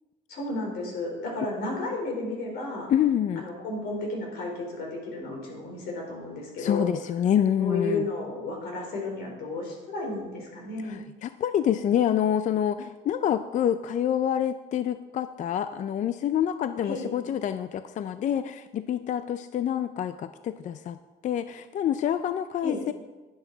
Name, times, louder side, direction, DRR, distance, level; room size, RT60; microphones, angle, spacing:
voice 1, 0.3-2.9 3.4-6.9 7.6-11.0 16.8-17.1 22.6-22.8, left 2 dB, 75° left, 0 dB, 4.0 m, -33 dB
voice 2, 2.9-3.4 6.6-8.1 10.8-21.0 21.2-22.9, left 9 dB, 50° left, 11 dB, 0.5 m, -27 dB
10.5 x 10.5 x 3.9 m, 1.2 s
cardioid pair, 110°, 17 cm